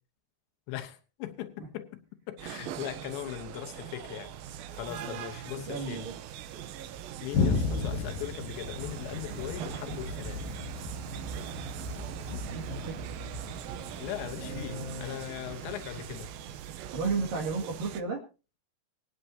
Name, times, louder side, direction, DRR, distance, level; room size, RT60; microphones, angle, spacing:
voice 1, 0.7-2.0 2.3-4.3 4.7-6.1 7.2-10.6 14.0-16.3, left 12 dB, 90° left, 3.3 m, -39 dB
sound 1, 2.4-18.0, right 10 dB, 75° right, 2.3 m, -41 dB
voice 2, 5.7-6.2 12.4-13.0 14.4-15.2 16.9-18.2, right 4 dB, 55° right, 3.6 m, -34 dB
Thunder, 7.3-16.8, left 4 dB, 60° left, 2.8 m, -35 dB
25.0 x 9.5 x 2.8 m
omnidirectional pair, 5.0 m